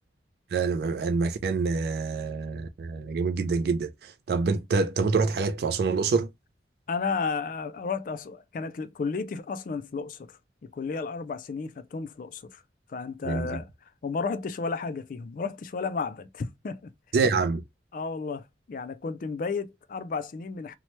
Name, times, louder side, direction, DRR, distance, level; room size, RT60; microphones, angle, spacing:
voice 1, 0.5-6.3 13.3-13.6 17.1-17.6, right 4 dB, 60° right, 0.3 m, -26 dB
voice 2, 6.9-12.6 12.9-13.7 14.0-16.8 17.9-20.7, left 4 dB, 45° left, 0.3 m, -33 dB
2.8 x 2.1 x 3.0 m
head